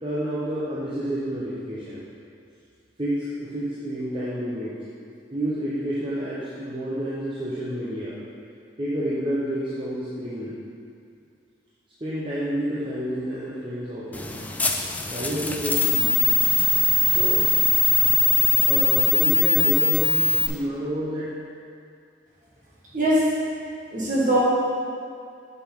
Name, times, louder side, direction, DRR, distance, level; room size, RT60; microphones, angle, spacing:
voice 1, 0.0-2.0 3.0-4.7 5.3-8.2 8.8-10.6 12.0-14.4 15.1-16.2 17.1-17.4 18.6-21.3, equal, 25° right, -9 dB, 0.9 m, -29 dB
sound 1, 14.1-20.5, left 4 dB, 10° left, 0.3 m, -21 dB
voice 2, 22.9-23.3 23.9-24.4, right 1 dB, 45° right, -6 dB, 1.8 m, -21 dB
7.4 x 6.8 x 3.7 m, 2.4 s
head